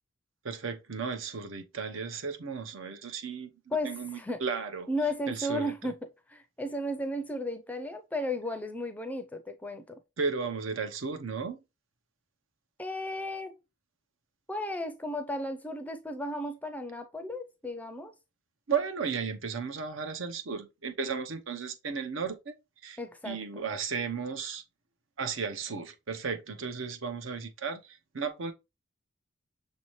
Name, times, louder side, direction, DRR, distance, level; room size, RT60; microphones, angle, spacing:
voice 1, 0.4-4.9 5.3-5.9 10.2-11.6 18.7-22.5 22.8-23.0 23.2-24.6 25.2-28.5, right 5 dB, 75° right, 0.7 m, -34 dB
voice 2, 3.7-4.4 4.9-6.0 6.3-10.0 12.8-13.6 14.5-18.1 23.0-23.4, left 1 dB, 10° left, 0.4 m, -34 dB
6.3 x 2.8 x 3.0 m
head